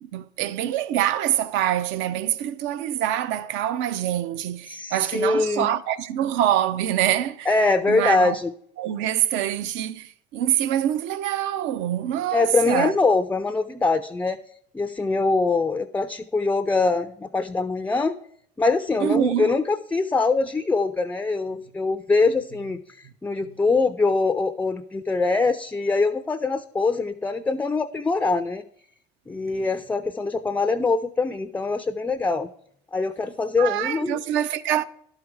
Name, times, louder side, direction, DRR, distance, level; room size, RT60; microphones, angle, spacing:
voice 1, 0.0-7.5 7.9-8.4 8.8-13.0 19.0-19.5 23.0-23.1 23.4-23.6 29.6-29.7 33.6-34.8, right 11 dB, 75° right, 0.6 m, -25 dB
voice 2, 4.7-5.7 7.5-8.5 12.3-14.4 14.7-18.1 18.6-22.8 23.2-28.6 29.3-32.5 32.9-34.2, left 3 dB, 10° left, 0.3 m, -23 dB
11.0 x 4.9 x 4.7 m
supercardioid pair, 100°, 20 cm